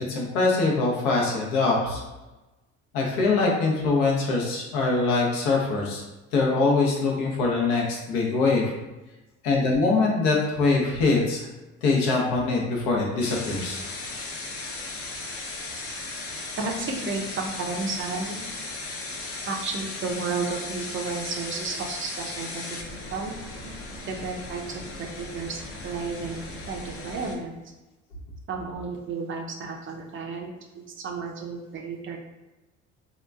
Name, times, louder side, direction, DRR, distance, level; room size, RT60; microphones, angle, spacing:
voice 1, 0.1-2.0 2.9-6.0 6.3-8.6 9.4-11.4 11.8-13.8, left 3 dB, 75° left, -1 dB, 0.8 m, -23 dB
sound 1, 13.2-27.3, left 2 dB, 40° left, 0.6 m, -36 dB
voice 2, 16.6-18.4 19.5-23.3 24.1-27.5 28.5-32.2, right 4 dB, 35° right, 2 dB, 0.5 m, -32 dB
2.9 x 2.3 x 2.3 m, 1.1 s
hypercardioid pair, 75°, 34 cm